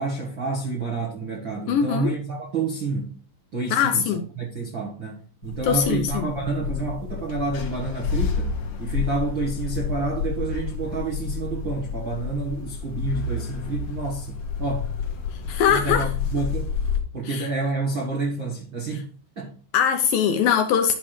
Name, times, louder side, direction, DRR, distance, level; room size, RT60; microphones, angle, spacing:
voice 1, 0.0-3.2 3.5-8.5 8.8-14.9 15.7-16.7 17.1-19.0 19.4-19.5, right 3 dB, 70° right, 1.1 m, -29 dB
voice 2, 1.7-2.1 3.7-4.2 5.6-6.3 15.5-16.1 17.2-17.5 19.7-20.9, left 8 dB, 75° left, 2.2 m, -21 dB
sound 1, 5.4-17.0, left 6 dB, 60° left, 2.2 m, -30 dB
11.5 x 5.9 x 3.1 m
omnidirectional pair, 4.7 m